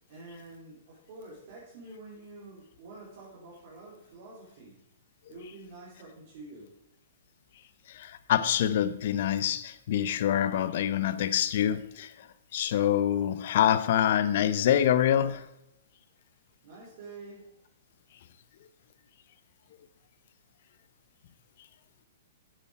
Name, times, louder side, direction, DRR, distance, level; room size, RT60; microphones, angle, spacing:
voice 1, 0.1-4.8 5.3-6.7 16.6-17.5, right 2 dB, 45° right, 3.6 m, -47 dB
voice 2, 7.9-12.1 12.5-15.5, left 10 dB, 50° left, 0.7 m, -26 dB
9.2 x 8.5 x 4.8 m
hypercardioid pair, 160°, 0 cm